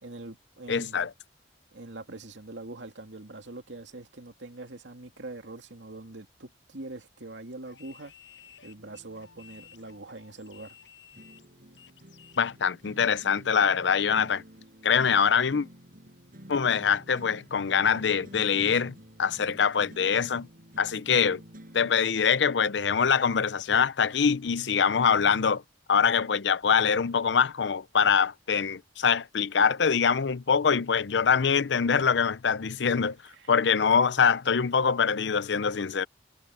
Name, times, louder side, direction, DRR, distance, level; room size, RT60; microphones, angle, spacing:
voice 1, 0.0-1.1 1.7-8.1 8.6-10.8 33.3-33.5, right 2 dB, 75° right, 2.6 m, -43 dB
voice 2, 0.7-1.1 12.4-14.4 14.8-15.7 16.5-20.5 20.8-21.4 21.7-25.6 25.9-33.2 33.5-36.1, left 6 dB, 70° left, 0.6 m, -24 dB
sound 1, 7.7-12.5, left 9 dB, 90° left, 7.0 m, -55 dB
sound 2, 8.8-22.7, equal, 50° right, 6.6 m, -51 dB
head